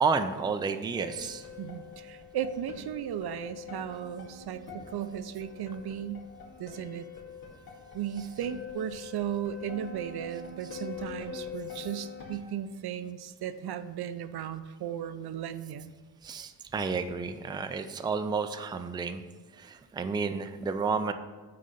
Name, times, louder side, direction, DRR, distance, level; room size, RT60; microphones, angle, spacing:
voice 1, 0.0-1.5 8.1-8.3 10.7-10.8 16.2-19.2 19.5-21.1, right 5 dB, 10° right, 8 dB, 0.4 m, -31 dB
sound 1, 0.9-12.4, left 6 dB, 65° left, 2.3 m, -44 dB
voice 2, 1.6-6.2 6.6-7.1 7.9-15.9 17.5-17.6, right 9 dB, 75° right, 12 dB, 0.6 m, -36 dB
9.2 x 3.9 x 6.7 m, 1.3 s
wide cardioid pair, 130°, 39 cm